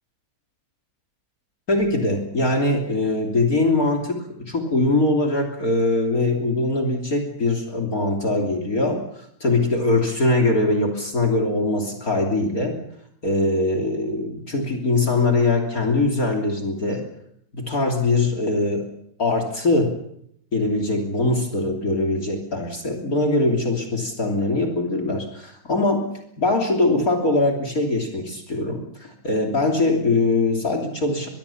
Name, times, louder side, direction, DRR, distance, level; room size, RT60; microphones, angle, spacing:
voice 1, 1.7-9.0 9.4-12.8 13.2-17.0 17.5-18.9 19.2-19.9 20.5-26.1 26.4-31.3, left 2 dB, 50° left, 5 dB, 3.6 m, -22 dB
23.5 x 22.0 x 7.2 m, 0.74 s
omnidirectional pair, 2.0 m